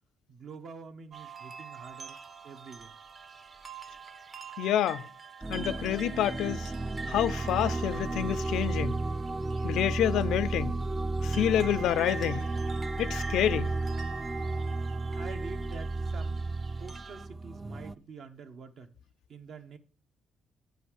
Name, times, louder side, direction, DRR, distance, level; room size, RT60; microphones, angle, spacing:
voice 1, 0.3-2.2 2.4-2.9 15.2-16.4 16.8-18.9 19.3-19.8, right 5 dB, 65° right, 1.2 m, -46 dB
sound 1, 1.1-17.3, right 5 dB, 40° right, 0.8 m, -44 dB
voice 2, 4.6-5.0 5.5-6.7 7.1-9.0 9.6-10.8 11.2-12.5 13.0-13.7, left 11 dB, 85° left, 0.4 m, -28 dB
sound 2, 5.4-17.9, right 2 dB, 20° right, 0.4 m, -33 dB
9.3 x 5.6 x 6.3 m
cardioid pair, 90°, 0 cm